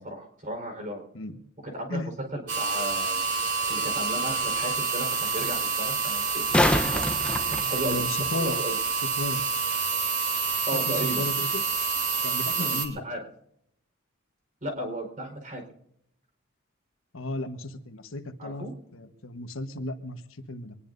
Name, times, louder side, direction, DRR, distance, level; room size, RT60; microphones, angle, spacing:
voice 1, 0.0-1.0 1.6-2.0 2.3-3.3 3.7-7.0 7.3-8.0 8.3-8.8 10.7-11.2 12.5-12.8 13.0-13.2 14.6-15.6 18.4-18.7, right 1 dB, 40° right, 5 dB, 4.6 m, -35 dB
sound 1, 2.5-12.9, right 5 dB, 60° right, 3.2 m, -28 dB
sound 2, 3.3-3.4 6.2-8.3 11.2-11.3, left 1 dB, 5° left, 0.8 m, -26 dB
voice 2, 7.8-8.6 9.2-9.4 10.7-11.6 12.2-13.0 17.1-18.7 18.9-20.8, left 2 dB, 70° left, 8 dB, 1.3 m, -34 dB
25.0 x 20.0 x 2.7 m, 0.74 s
head